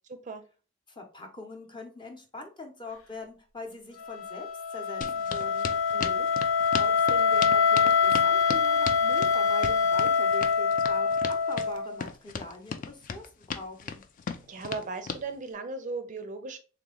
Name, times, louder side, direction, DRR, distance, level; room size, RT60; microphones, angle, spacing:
voice 1, 0.9-5.7 6.8-11.2 11.5-14.0, left 2 dB, 25° left, 3 dB, 0.8 m, -43 dB
Wind instrument woodwind instrument, 4.0-12.0, left 6 dB, 90° left, 0.7 m, -25 dB
sound 1, 5.0-15.2, left 5 dB, 40° left, 0.4 m, -36 dB
voice 2, 5.9-6.3 14.5-16.6, right 3 dB, 40° right, 8 dB, 0.4 m, -37 dB
3.5 x 3.0 x 3.7 m, 0.35 s
head